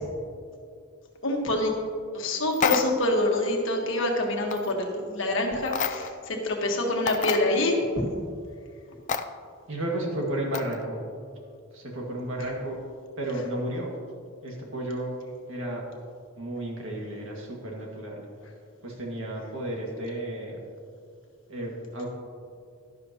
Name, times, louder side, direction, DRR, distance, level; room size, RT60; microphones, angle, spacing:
voice 1, 1.2-1.7 2.1-7.7, left 2 dB, 60° left, 1 dB, 1.5 m, -26 dB
sound 1, 2.5-3.1 4.5-4.7 5.7-6.2 6.7-6.8 7.1-7.5 9.1-9.3 10.5-10.8, left 6 dB, 35° left, 0.4 m, -28 dB
voice 2, 9.7-11.0 11.7-12.8 13.2-13.9 14.4-15.1 15.5-15.9 16.4-18.2 18.8-20.6 21.5-22.1, right 1 dB, 60° right, -1 dB, 2.0 m, -32 dB
11.5 x 11.5 x 3.0 m, 2.3 s
head